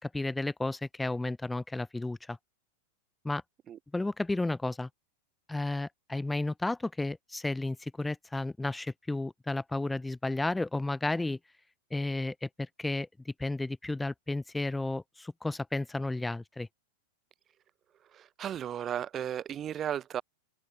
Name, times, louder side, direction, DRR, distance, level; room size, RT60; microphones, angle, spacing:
voice 1, 0.0-2.4 3.2-3.4 3.9-4.9 5.5-11.4 11.9-16.7, left 2 dB, 5° left, 3.8 m, -33 dB
voice 2, 18.1-20.2, right 10 dB, 25° right, 5.7 m, -35 dB
open air
figure-of-eight pair, 90°, 0 cm